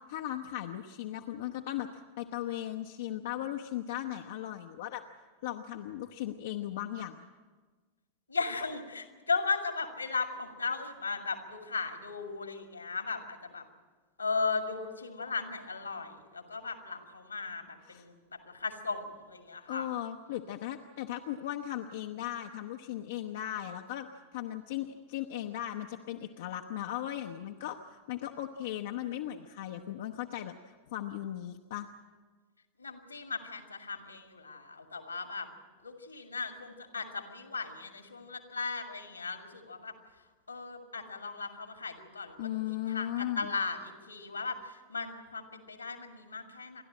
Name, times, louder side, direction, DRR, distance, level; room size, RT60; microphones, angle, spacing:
voice 1, 0.1-5.0 5.4-7.3 17.9-18.0 19.7-24.1 24.3-31.9 42.4-43.5, left 12 dB, 55° left, 4 dB, 0.8 m, -37 dB
voice 2, 8.3-13.6 14.2-19.9 32.8-35.5 35.8-39.9 40.5-46.8, left 4 dB, 80° left, 6 dB, 2.2 m, -37 dB
29.0 x 12.0 x 8.8 m, 1.4 s
figure-of-eight pair, 90°, 0 cm